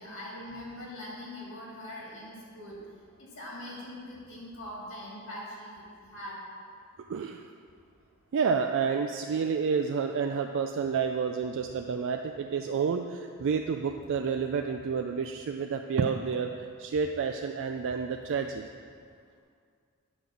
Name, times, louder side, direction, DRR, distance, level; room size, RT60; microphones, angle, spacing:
voice 1, 0.0-2.8 3.2-6.4, left 1 dB, 65° left, -4 dB, 2.5 m, -42 dB
voice 2, 7.1-7.5 8.3-18.6, right 6 dB, 60° right, 4 dB, 0.4 m, -29 dB
8.9 x 5.0 x 6.2 m, 2.2 s
head